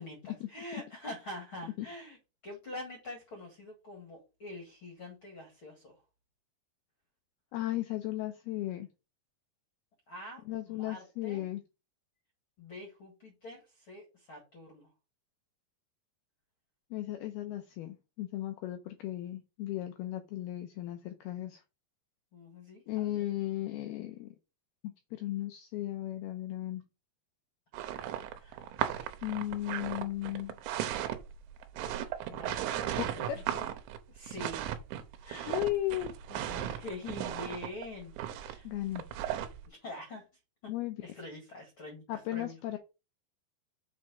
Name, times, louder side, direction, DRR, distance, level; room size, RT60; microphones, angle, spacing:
voice 1, 0.0-2.2 2.4-6.0 10.1-11.5 12.6-14.9 22.3-22.8 23.1-23.2 28.4-28.6 32.2-33.6 34.1-34.7 35.2-35.6 36.3-38.7 39.6-40.3 40.6-40.7 41.0-42.6, left 2 dB, 50° left, 1.6 m, -45 dB
voice 2, 7.5-8.9 10.5-11.6 16.9-21.6 22.9-24.4 25.1-26.8 29.2-30.6 33.3-33.4 35.5-36.1 38.6-39.0 40.7-41.0 42.1-42.8, left 14 dB, 90° left, 2.2 m, -35 dB
sound 1, 27.7-39.6, right 11 dB, 80° right, 3.0 m, -36 dB
7.5 x 4.7 x 5.0 m
omnidirectional pair, 5.3 m